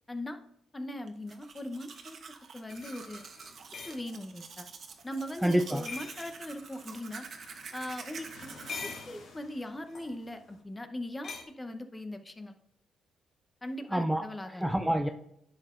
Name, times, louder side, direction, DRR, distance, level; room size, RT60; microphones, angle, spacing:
voice 1, 0.1-0.4 0.7-2.2 2.5-3.2 3.9-4.7 5.0-7.3 7.7-12.6 13.6-14.6, left 1 dB, 15° left, 0.8 m, -40 dB
Domestic sounds home sounds, 1.1-8.8, right 5 dB, 55° right, 1.1 m, -47 dB
sound 1, 1.9-2.0 2.7-4.0 5.8-6.4 8.4-9.2 9.9-10.1 11.2-11.4, left 4 dB, 55° left, 1.9 m, -43 dB
sound 2, 3.0-10.6, left 3 dB, 75° left, 2.0 m, -56 dB
voice 2, 5.4-5.9 13.9-15.1, right 1 dB, 5° right, 0.5 m, -28 dB
10.5 x 6.7 x 2.5 m
cardioid pair, 90°, 0 cm